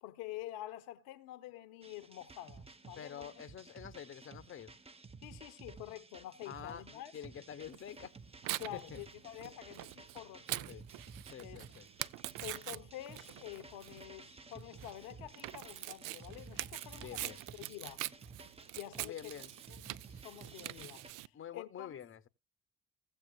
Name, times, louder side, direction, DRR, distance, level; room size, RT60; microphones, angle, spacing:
voice 1, 0.0-3.3 5.2-7.1 8.6-10.8 11.4-11.9 12.4-17.3 17.6-18.0 18.7-19.3 19.7-19.8 20.1-22.0, left 14 dB, 70° left, 0.8 m, -48 dB
sound 1, 1.8-21.1, right 4 dB, 15° right, 0.8 m, -54 dB
voice 2, 3.0-4.8 6.4-8.1 8.5-9.0 10.7-10.9 11.3-11.9 16.9-17.4 19.0-19.5 21.3-22.3, left 9 dB, 35° left, 0.8 m, -48 dB
Tearing, 7.7-21.3, right 17 dB, 55° right, 0.5 m, -44 dB
16.5 x 7.8 x 2.2 m
figure-of-eight pair, 45°, 39 cm